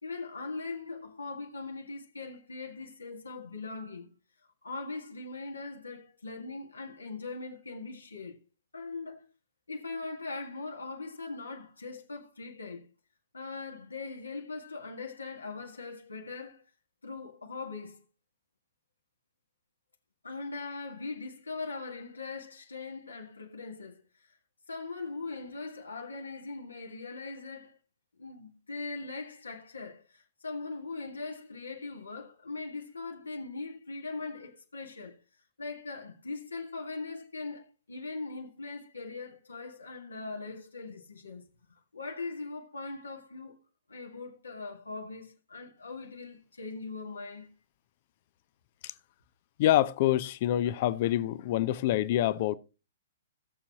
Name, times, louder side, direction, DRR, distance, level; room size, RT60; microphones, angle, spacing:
voice 1, 0.0-4.1 4.6-8.4 8.7-9.3 9.7-12.9 13.3-16.6 17.0-18.0 20.2-24.0 24.3-24.4 24.7-27.8 28.2-35.2 35.6-41.5 41.9-43.6 43.9-47.5, left 3 dB, 75° left, 1.7 m, -40 dB
voice 2, 49.6-52.6, left 13 dB, 45° left, 0.7 m, -26 dB
17.0 x 6.9 x 2.9 m
figure-of-eight pair, 115°, 0 cm